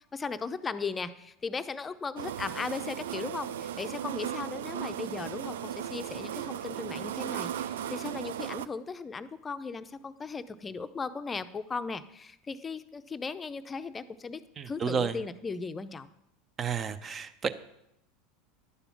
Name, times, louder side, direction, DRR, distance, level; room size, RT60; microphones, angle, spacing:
voice 1, 0.0-16.1, left 4 dB, 20° left, 12 dB, 0.6 m, -37 dB
sound 1, 2.2-8.7, right 10 dB, 65° right, 0.4 m, -36 dB
voice 2, 14.6-15.2 16.6-17.5, right 6 dB, 30° right, 12 dB, 0.7 m, -31 dB
11.0 x 6.9 x 5.9 m, 0.83 s
figure-of-eight pair, 75°, 0 cm